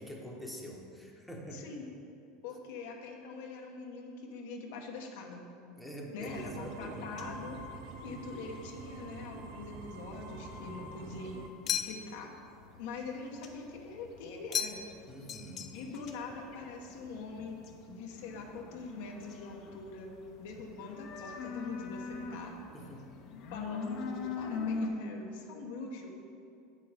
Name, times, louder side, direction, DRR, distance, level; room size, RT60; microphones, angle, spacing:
voice 1, 0.0-1.7 5.8-7.2 15.1-15.8 22.7-23.0, equal, ahead, -2 dB, 1.2 m, -45 dB
voice 2, 1.5-1.9 2.4-5.4 6.1-7.6 8.0-12.3 12.8-14.9 15.7-17.6 17.9-20.1 20.4-22.5 23.5-26.1, left 4 dB, 75° left, 1 dB, 1.1 m, -43 dB
sound 1, 6.2-24.9, left 4 dB, 50° left, 0.9 m, -45 dB
sound 2, 6.2-11.5, right 4 dB, 65° right, 0.7 m, -46 dB
sound 3, 11.7-12.3 14.5-15.0 15.3-16.0, left 8 dB, 35° left, 0.4 m, -35 dB
7.7 x 6.4 x 5.1 m, 2.5 s
supercardioid pair, 115°, 0 cm